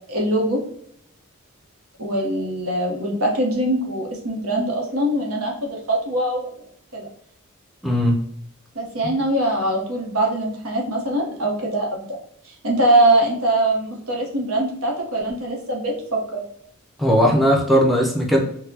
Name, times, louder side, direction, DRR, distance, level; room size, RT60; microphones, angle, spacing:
voice 1, 0.1-0.6 2.0-6.5 6.9-7.1 8.7-12.1 12.6-16.4, right 1 dB, 85° right, -1 dB, 1.0 m, -22 dB
voice 2, 7.8-8.2 17.0-18.4, equal, ahead, -1 dB, 0.5 m, -17 dB
3.8 x 2.1 x 2.7 m, 0.68 s
head